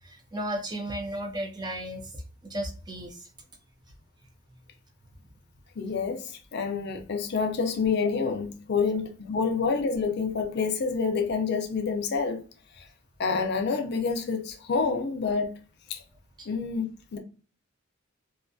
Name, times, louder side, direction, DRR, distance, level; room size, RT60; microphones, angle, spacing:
voice 1, 0.0-3.3 8.8-8.9 16.4-16.5, right 1 dB, 20° right, 0.5 m, -35 dB
voice 2, 5.8-12.4 12.8-12.9 13.2-15.5 15.9-16.0 16.5-17.2, left 5 dB, 55° left, 0.4 m, -28 dB
2.4 x 2.3 x 2.5 m
head